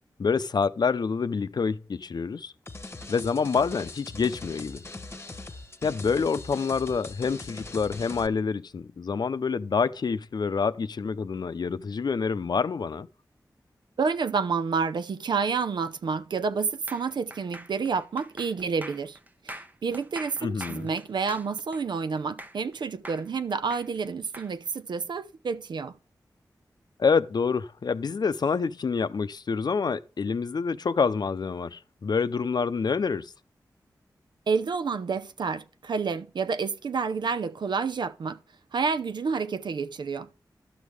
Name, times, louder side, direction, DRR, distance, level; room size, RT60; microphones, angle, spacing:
voice 1, 0.2-2.5 3.1-4.8 5.8-13.1 20.4-20.9 27.0-33.3, left 5 dB, 65° left, 0.6 m, -27 dB
sound 1, 2.7-8.3, left 2 dB, 35° left, 1.1 m, -41 dB
voice 2, 14.0-19.2 19.4-26.0 34.5-38.4 38.7-40.4, right 5 dB, 80° right, 0.6 m, -29 dB
sound 2, 16.9-22.7 23.0-24.5, right 1 dB, 25° right, 0.9 m, -43 dB
12.0 x 6.4 x 3.4 m
cardioid pair, 45°, 8 cm